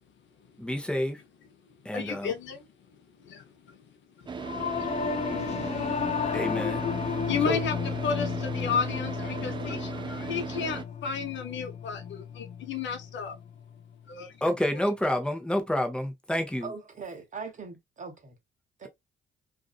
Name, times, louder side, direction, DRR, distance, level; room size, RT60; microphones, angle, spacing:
voice 1, 0.6-1.2 1.8-2.3 6.3-7.6 14.4-16.7, left 1 dB, 5° left, 0.8 m, -29 dB
voice 2, 1.7-5.5 5.8-6.3 7.3-7.7 8.0-13.4 14.1-14.4, left 6 dB, 70° left, 0.7 m, -34 dB
Car / Idling, 4.3-10.8, right 5 dB, 25° right, 0.4 m, -37 dB
Singing / Musical instrument, 4.4-14.0, left 6 dB, 35° left, 0.4 m, -33 dB
voice 3, 16.6-18.4 18.8-18.9, right 5 dB, 40° right, 1.0 m, -40 dB
2.5 x 2.5 x 2.3 m
cardioid pair, 90°, 20 cm